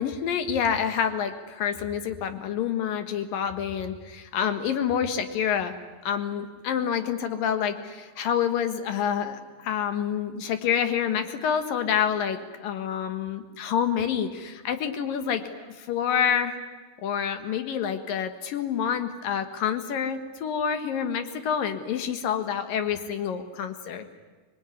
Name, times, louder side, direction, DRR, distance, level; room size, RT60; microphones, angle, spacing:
voice 1, 0.0-5.7 6.0-16.6 17.0-24.0, left 8 dB, 75° left, 8 dB, 3.3 m, -28 dB
26.0 x 21.0 x 9.8 m, 1.3 s
omnidirectional pair, 4.0 m